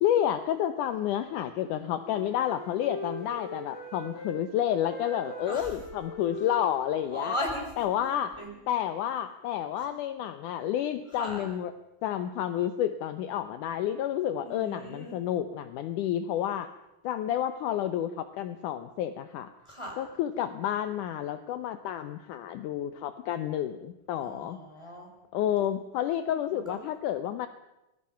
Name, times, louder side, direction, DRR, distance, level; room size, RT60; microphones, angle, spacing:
voice 1, 0.0-7.4 7.8-8.4 8.7-11.7 12.0-16.7 17.0-19.5 20.0-24.6 25.3-27.5, left 11 dB, 75° left, 10 dB, 2.3 m, -30 dB
Wind instrument woodwind instrument, 1.0-4.4 4.7-8.6, left 2 dB, 50° left, 7.2 m, -42 dB
voice 2, 7.1-7.7 8.4-8.5 11.2-11.4 14.4-15.2 19.6-20.0 24.2-25.1 26.5-26.8, left 1 dB, 10° left, 0 dB, 6.0 m, -37 dB
27.0 x 21.0 x 5.7 m, 0.94 s
omnidirectional pair, 3.9 m